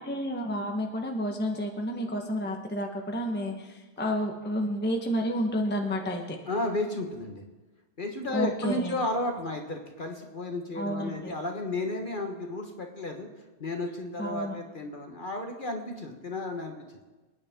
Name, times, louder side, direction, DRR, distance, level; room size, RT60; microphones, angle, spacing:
voice 1, 0.0-6.4 8.3-9.0 10.7-11.3 14.2-14.6, equal, 10° left, 2 dB, 0.4 m, -30 dB
voice 2, 6.5-7.4 8.0-13.3 13.6-17.0, left 1 dB, 30° left, 3 dB, 1.2 m, -33 dB
27.5 x 9.8 x 3.7 m, 1.2 s
omnidirectional pair, 2.4 m